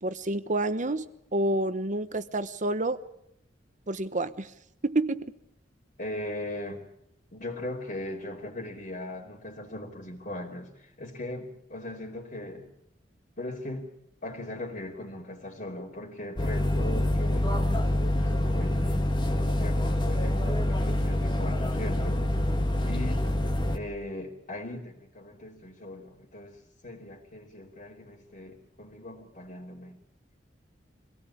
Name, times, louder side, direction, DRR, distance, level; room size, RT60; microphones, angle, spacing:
voice 1, 0.0-3.0 3.9-4.5 4.8-5.3, right 2 dB, 45° right, 12 dB, 1.1 m, -29 dB
voice 2, 6.0-6.9 7.3-12.7 13.4-13.9 14.2-19.1 19.5-22.3 22.8-23.3 23.7-30.0, left 1 dB, 45° left, -4 dB, 3.1 m, -39 dB
sound 1, 16.4-23.8, left 1 dB, 25° left, 1.8 m, -26 dB
24.5 x 18.0 x 8.6 m, 0.79 s
head